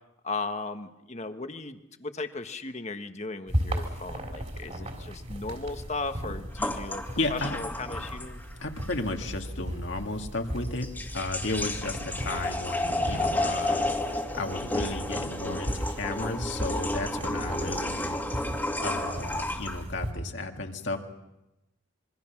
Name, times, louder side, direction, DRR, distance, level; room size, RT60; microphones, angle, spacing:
voice 1, 0.2-8.4, left 3 dB, 35° left, 8 dB, 1.3 m, -36 dB
sound 1, 3.5-20.1, equal, 35° right, 3.6 m, -36 dB
sound 2, 6.6-8.5 8.8-8.9 10.7-19.8, left 1 dB, 10° left, 2.1 m, -32 dB
voice 2, 7.2-7.6 8.6-10.9 11.1-13.9 14.3-18.2 18.8-21.0, left 2 dB, 65° left, 3 dB, 2.2 m, -33 dB
27.0 x 23.5 x 6.0 m, 0.92 s
head